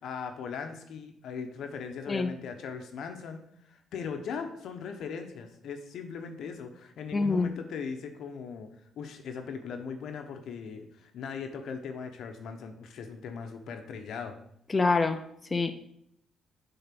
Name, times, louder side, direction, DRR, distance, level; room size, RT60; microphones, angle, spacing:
voice 1, 0.0-3.4 3.7-8.7 9.0-14.3, left 6 dB, 75° left, 6 dB, 0.9 m, -39 dB
voice 2, 7.1-7.5 14.7-15.2 15.5-15.7, left 3 dB, 25° left, 7 dB, 0.6 m, -25 dB
6.9 x 4.0 x 5.9 m, 0.71 s
cardioid pair, 90°, 0 cm